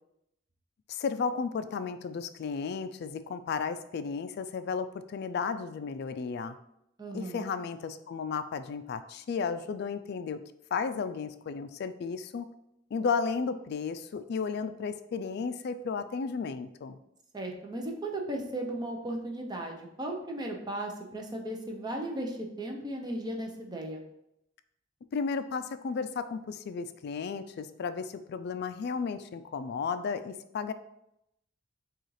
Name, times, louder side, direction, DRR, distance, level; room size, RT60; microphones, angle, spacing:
voice 1, 0.9-6.5 7.1-10.4 10.7-12.5 12.9-17.0 25.1-30.7, left 5 dB, 55° left, 11 dB, 0.3 m, -33 dB
voice 2, 7.0-7.5 17.3-24.0, right 1 dB, 20° right, 1 dB, 0.6 m, -36 dB
6.4 x 2.4 x 3.2 m, 0.81 s
head